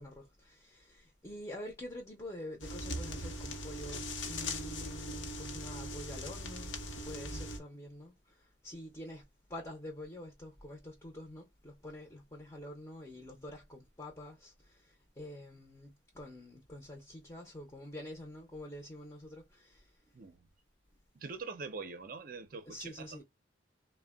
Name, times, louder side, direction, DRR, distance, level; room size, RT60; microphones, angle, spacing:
voice 1, 0.0-20.1 22.6-23.2, left 1 dB, 20° left, 0.6 m, -47 dB
sound 1, 2.6-7.6, left 1 dB, 75° left, 0.8 m, -40 dB
voice 2, 20.1-20.5 21.1-23.2, right 4 dB, 45° right, 0.5 m, -44 dB
3.4 x 2.1 x 2.2 m
head